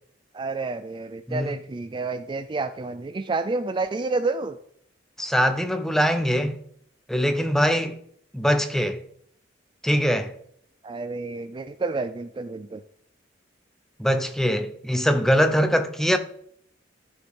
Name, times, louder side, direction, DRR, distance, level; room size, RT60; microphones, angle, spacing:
voice 1, 0.3-4.6 10.8-12.8, right 3 dB, 25° right, 0.3 m, -29 dB
voice 2, 5.2-6.6 7.1-8.0 8.3-9.0 9.8-10.3 14.0-16.2, equal, ahead, 0.7 m, -22 dB
13.0 x 6.4 x 3.7 m
head